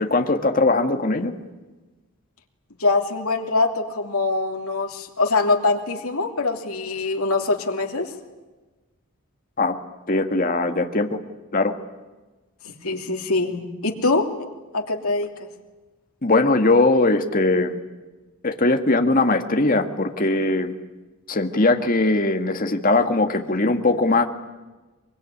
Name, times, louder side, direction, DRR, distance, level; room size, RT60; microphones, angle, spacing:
voice 1, 0.0-1.3 9.6-9.8 10.1-11.2 11.5-11.7 16.2-17.8 18.4-20.7 21.3-24.3, left 2 dB, 40° left, 7 dB, 1.7 m, -20 dB
voice 2, 2.8-8.1 12.6-14.3 14.7-15.3, left 3 dB, 80° left, 4 dB, 3.0 m, -23 dB
23.5 x 22.5 x 10.0 m, 1.2 s
head